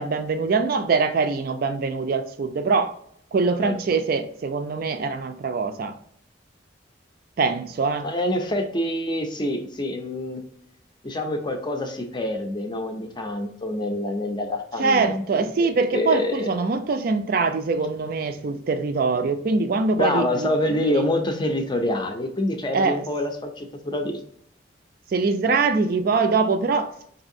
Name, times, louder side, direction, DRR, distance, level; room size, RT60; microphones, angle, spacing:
voice 1, 0.0-2.9 3.3-6.0 7.4-8.1 14.8-21.0 22.7-23.0 25.1-26.9, right 4 dB, 50° right, 0.4 m, -23 dB
voice 2, 3.6-4.0 8.0-10.4 11.0-16.5 20.0-24.1, left 1 dB, 25° left, 0.5 m, -26 dB
5.1 x 2.7 x 2.6 m
head